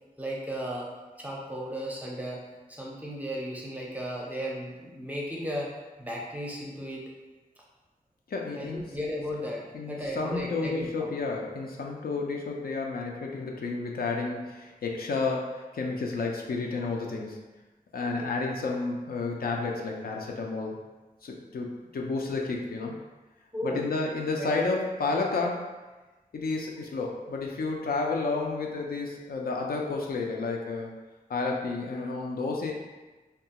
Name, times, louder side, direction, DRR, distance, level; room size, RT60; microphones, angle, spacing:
voice 1, 0.2-0.9 1.2-2.4 2.7-5.7 6.0-7.0 8.6-11.1 18.2-18.3 23.5-23.8 24.4-24.5, equal, 10° right, -4 dB, 0.5 m, -35 dB
voice 2, 8.3-9.0 9.7-17.5 17.9-20.8 21.2-22.9 23.6-25.8 26.3-30.9 31.3-32.7, left 3 dB, 75° left, 0 dB, 0.4 m, -31 dB
2.8 x 2.3 x 2.8 m, 1.2 s
wide cardioid pair, 110°, 16 cm